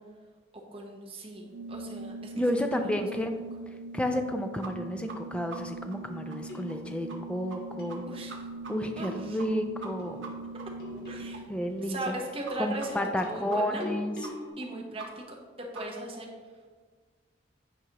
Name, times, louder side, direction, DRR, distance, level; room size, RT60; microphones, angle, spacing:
voice 1, 0.5-3.1 8.1-8.5 9.0-9.4 11.1-11.4 11.8-13.0 13.2-13.8 14.6-16.3, right 1 dB, 30° right, 0 dB, 1.0 m, -39 dB
Organ, 1.5-11.8, right 2 dB, 65° right, 0.3 m, -42 dB
voice 2, 2.3-3.4 3.9-8.0 8.7-10.3 11.5-12.1 12.6-14.1, left 1 dB, 5° left, 5 dB, 0.4 m, -31 dB
sound 1, 4.6-4.7 5.1-5.2 5.5-5.6 5.9-6.0 6.3-6.4 6.7-6.8 7.1-7.2 7.5-7.6 7.9-8.0 8.3-8.7 9.0-9.1 9.4-9.5 9.8-9.9 10.2-10.3 10.6-10.7 11.0-11.1 11.3-11.4 11.7-11.8 12.1-12.2 12.4-12.5 12.8-12.9 13.2-13.3 13.5-13.6 13.8-13.9 14.2-14.3 14.6-14.7 15.0-15.1 15.4-15.5 15.7-15.8 16.1-16.2, right 4 dB, 85° right, 1.0 m, -43 dB
sound 2, 6.0-8.5 10.0-14.5, left 2 dB, 50° left, 1.2 m, -44 dB
9.1 x 4.9 x 2.9 m, 1.5 s
head